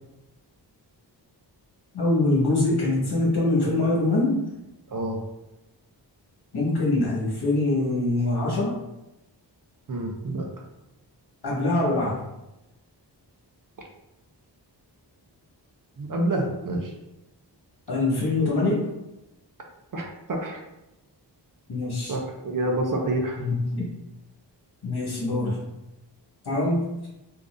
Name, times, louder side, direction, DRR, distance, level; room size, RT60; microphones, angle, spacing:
voice 1, 1.9-4.4 6.5-8.7 11.4-12.2 17.9-18.9 21.7-22.2 23.4-23.9 24.8-25.6 26.4-27.1, left 2 dB, 60° left, -5 dB, 1.4 m, -24 dB
voice 2, 4.9-5.2 9.9-10.5 16.0-16.9 19.9-20.6 22.1-23.4, right 1 dB, 50° right, 2 dB, 0.6 m, -28 dB
3.7 x 2.6 x 2.5 m, 0.94 s
wide cardioid pair, 90°, 43 cm